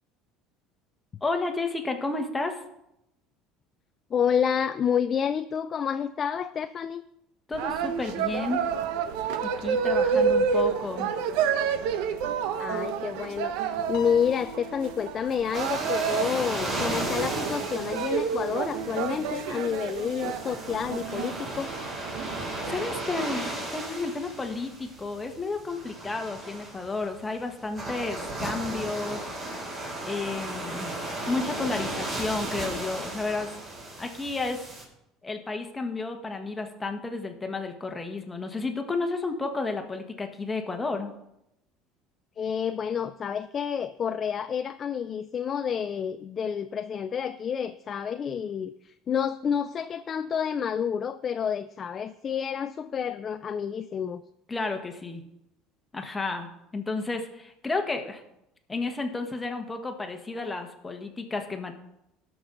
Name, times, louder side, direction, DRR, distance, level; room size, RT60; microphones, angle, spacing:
voice 1, 1.2-2.6 7.5-8.6 9.4-11.1 22.6-29.3 30.0-30.9 31.3-33.5 34.0-34.6 35.2-41.1 54.5-55.2 55.9-58.2 58.7-61.7, left 3 dB, 10° left, 4 dB, 1.2 m, -32 dB
voice 2, 4.1-7.0 12.6-21.7 42.4-54.2, left 7 dB, 30° left, 10 dB, 0.3 m, -29 dB
sound 1, 7.5-23.5, right 6 dB, 75° right, 0.8 m, -29 dB
Piano, 13.9-16.4, left 11 dB, 55° left, 1.3 m, -46 dB
sound 2, 15.5-34.8, right 1 dB, 30° right, 3.5 m, -35 dB
17.5 x 6.1 x 3.8 m, 0.83 s
cardioid pair, 150°, 0 cm